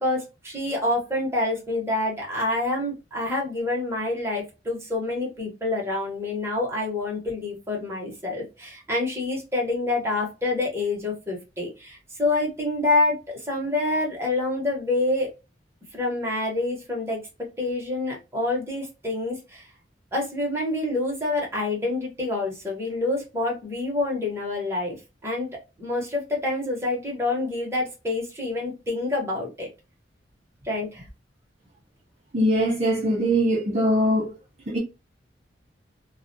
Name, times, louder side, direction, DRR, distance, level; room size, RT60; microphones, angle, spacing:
voice 1, 0.0-15.3 15.9-17.2 17.6-19.7 20.1-25.0 25.2-25.5 25.8-29.7 30.6-31.1, left 2 dB, 15° right, 0.9 m, -27 dB
voice 2, 32.3-34.3 34.7-34.8, equal, 40° right, 0.5 m, -22 dB
2.3 x 2.1 x 2.6 m
head